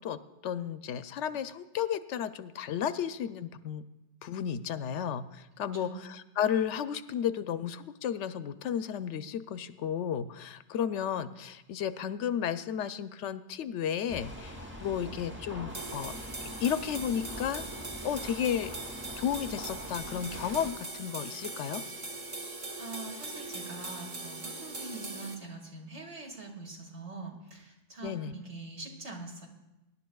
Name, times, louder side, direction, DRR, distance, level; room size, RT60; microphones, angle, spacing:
voice 1, 0.0-3.8 4.2-14.6 14.8-16.1 16.4-17.7 18.0-18.7 19.2-21.8 28.0-28.4, left 8 dB, 80° left, 12 dB, 0.9 m, -33 dB
voice 2, 5.7-6.1 22.8-29.5, right 3 dB, 70° right, 0 dB, 2.3 m, -43 dB
sound 1, 14.1-20.7, equal, 10° right, 1.0 m, -43 dB
sound 2, 15.7-25.4, right 2 dB, 35° right, 1.2 m, -41 dB
23.5 x 11.0 x 2.3 m, 1.0 s
omnidirectional pair, 1.2 m